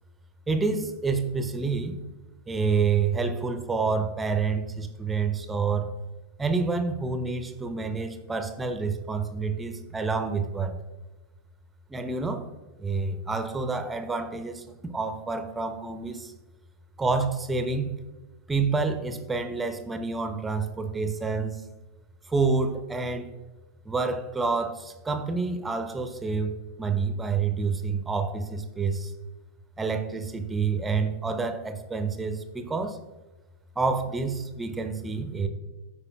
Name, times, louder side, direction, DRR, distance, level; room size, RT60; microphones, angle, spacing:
voice 1, 0.5-2.0 2.5-5.9 6.4-10.8 11.9-12.5 12.8-14.6 14.9-16.3 17.0-17.9 18.5-21.6 22.3-23.3 23.9-26.5 26.8-29.1 29.8-33.0 33.8-35.5, right 4 dB, 10° right, 8 dB, 0.8 m, -28 dB
13.0 x 5.0 x 2.4 m, 1.2 s
figure-of-eight pair, 90°, 0 cm